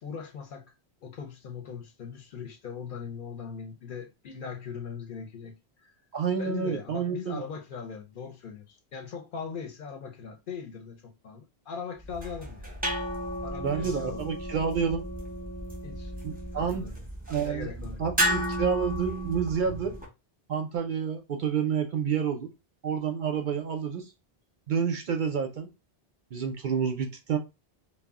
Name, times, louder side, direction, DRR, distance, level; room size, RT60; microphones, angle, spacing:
voice 1, 0.0-0.7 1.0-5.5 5.8-5.9 6.4-12.7 13.4-14.2 15.8-16.1 16.5-17.0 17.4-18.0, left 6 dB, 60° left, 0.7 m, -40 dB
voice 2, 6.1-7.4 13.6-15.0 16.2-16.9 17.3-17.7 18.0-20.0 20.5-22.5 22.8-24.1 24.7-25.7 26.3-27.4, right 6 dB, 60° right, 0.6 m, -29 dB
sound 1, 12.0-20.1, right 1 dB, 10° right, 0.5 m, -33 dB
2.2 x 2.0 x 3.5 m
omnidirectional pair, 1.1 m